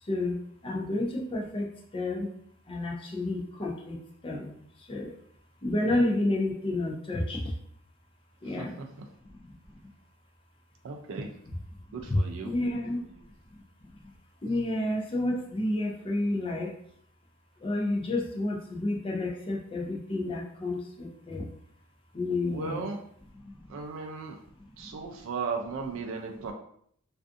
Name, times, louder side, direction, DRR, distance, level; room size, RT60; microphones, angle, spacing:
voice 1, 0.0-2.3 2.7-5.2 5.6-7.5 8.4-8.8 9.2-9.5 9.8-9.9 12.1-13.0 13.5-14.1 14.4-16.8 17.6-21.4 22.1-22.9 23.4-23.8 24.8-25.0, left 2 dB, 25° left, -1 dB, 0.4 m, -31 dB
voice 2, 8.4-8.9 10.8-11.3 11.9-12.5 22.4-23.0 23.7-24.4 24.8-26.5, right 4 dB, 65° right, 2 dB, 0.3 m, -36 dB
2.5 x 2.4 x 2.4 m, 0.65 s
head